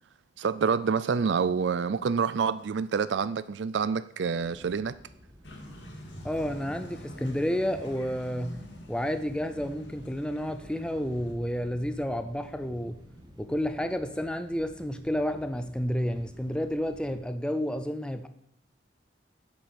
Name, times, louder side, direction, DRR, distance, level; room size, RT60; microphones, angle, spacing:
voice 1, 0.4-4.9, right 6 dB, 70° right, 0.4 m, -27 dB
sound 1, 4.4-17.2, equal, 25° right, 1.7 m, -52 dB
sound 2, 5.4-11.3, equal, 70° left, 2.5 m, -45 dB
voice 2, 6.2-8.6 8.9-13.0 13.4-18.3, equal, 5° left, 0.5 m, -30 dB
8.6 x 7.6 x 7.0 m
head